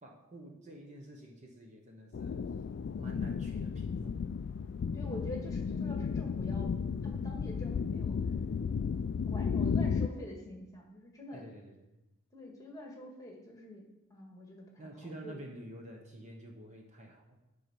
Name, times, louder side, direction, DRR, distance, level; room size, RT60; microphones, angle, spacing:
voice 1, 0.0-2.4 3.0-4.3 11.3-12.0 14.8-17.4, right 1 dB, 30° right, 1 dB, 1.1 m, -49 dB
sound 1, 2.1-10.1, left 6 dB, 50° left, 0.3 m, -33 dB
voice 2, 4.9-6.7 7.0-8.2 9.3-11.4 12.3-15.4, left 1 dB, 15° left, 0 dB, 1.7 m, -46 dB
10.0 x 5.5 x 6.1 m, 0.95 s
head